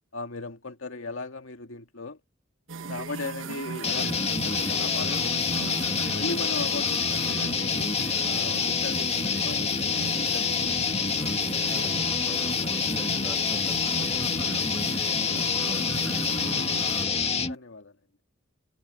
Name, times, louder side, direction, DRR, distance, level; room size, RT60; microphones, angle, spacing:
voice 1, 0.1-2.2 2.8-5.8 6.1-7.9 8.2-10.8 17.5-17.9, left 3 dB, 90° left, 2.0 m, -38 dB
sound 1, 2.7-17.1, right 4 dB, 75° right, 1.2 m, -38 dB
sound 2, 3.8-17.6, left 5 dB, 30° left, 1.8 m, -27 dB
voice 2, 11.1-14.6 15.3-16.2 16.9-17.3, equal, ahead, 5.2 m, -48 dB
head